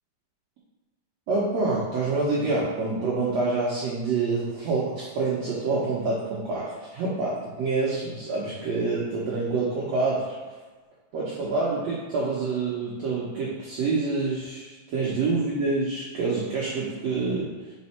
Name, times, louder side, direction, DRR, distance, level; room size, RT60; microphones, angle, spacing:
voice 1, 1.3-10.4 11.1-17.5, right 3 dB, 85° right, -6 dB, 1.5 m, -27 dB
5.4 x 4.3 x 4.2 m, 1.3 s
omnidirectional pair, 4.3 m